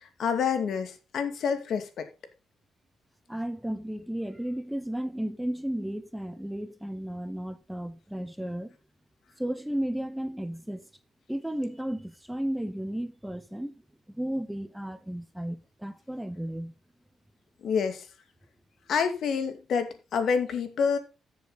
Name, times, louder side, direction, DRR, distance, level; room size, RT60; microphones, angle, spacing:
voice 1, 0.0-2.1 17.6-18.1 18.9-21.0, left 6 dB, 65° left, 2.3 m, -28 dB
voice 2, 3.3-8.7 9.4-10.9 11.3-13.7 14.1-16.7, right 1 dB, 5° right, 0.8 m, -34 dB
14.0 x 7.0 x 4.0 m
cardioid pair, 90°, 0 cm